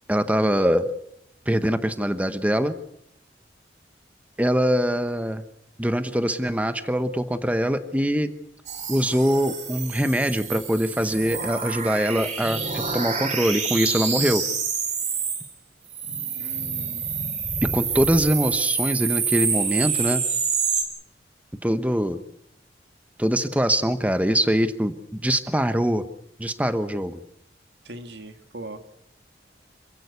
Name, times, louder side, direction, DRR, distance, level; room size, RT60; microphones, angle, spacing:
voice 1, 0.1-0.8 1.5-2.8 4.4-5.4 5.8-8.3 8.9-14.4 17.6-20.2 21.6-22.2 23.2-26.0 26.4-27.2, equal, 10° right, 10 dB, 1.0 m, -23 dB
sound 1, 8.7-15.5 15.9-20.8, right 6 dB, 40° right, 4.2 m, -27 dB
voice 2, 16.3-17.0 27.9-28.8, right 2 dB, 75° right, 8 dB, 2.0 m, -39 dB
27.0 x 16.5 x 8.2 m, 0.75 s
head